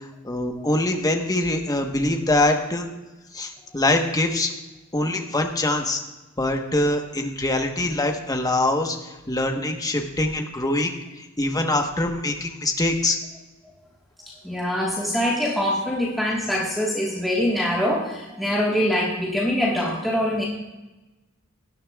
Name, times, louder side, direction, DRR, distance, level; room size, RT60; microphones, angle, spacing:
voice 1, 0.2-2.9 3.3-4.5 4.9-6.0 6.4-10.9 11.4-13.2, left 2 dB, 20° left, 3 dB, 1.0 m, -23 dB
voice 2, 14.4-20.4, equal, ahead, -5 dB, 1.4 m, -24 dB
17.0 x 11.5 x 2.3 m, 1.1 s
head